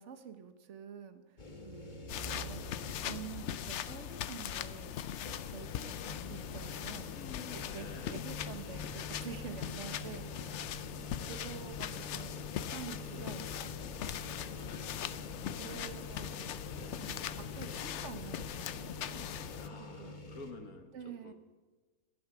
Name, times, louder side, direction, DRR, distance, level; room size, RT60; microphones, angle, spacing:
voice 1, 0.0-1.4 1.6-5.0 5.5-5.9 6.3-7.2 7.5-10.5 11.0-14.9 15.6-16.4 16.8-19.2 19.8-20.1 20.9-21.3, right 8 dB, 60° right, 9 dB, 1.4 m, -48 dB
sound 1, 1.4-3.5 4.0-4.1 5.2-20.5, left 1 dB, 35° left, 1.5 m, -47 dB
sound 2, 2.1-19.7, left 10 dB, 65° left, 0.8 m, -41 dB
voice 2, 7.1-8.3 11.3-11.4 13.2-13.8 14.7-14.9 15.6-16.0 17.7-17.9 19.6-21.3, left 4 dB, 85° left, 6 dB, 1.9 m, -51 dB
17.0 x 11.5 x 5.0 m, 1.2 s
omnidirectional pair, 1.5 m